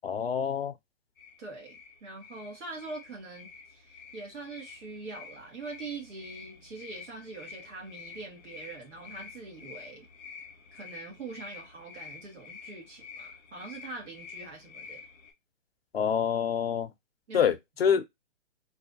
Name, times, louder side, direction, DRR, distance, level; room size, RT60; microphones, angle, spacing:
voice 1, 0.0-0.7 15.9-16.9 17.3-18.0, left 8 dB, 50° left, 0.6 m, -26 dB
sound 1, 1.2-15.3, left 6 dB, ahead, 0.7 m, -48 dB
voice 2, 1.4-10.1 10.7-15.0 17.3-17.5, right 3 dB, 65° right, 2.2 m, -43 dB
3.9 x 2.7 x 2.6 m
hypercardioid pair, 175°, 39 cm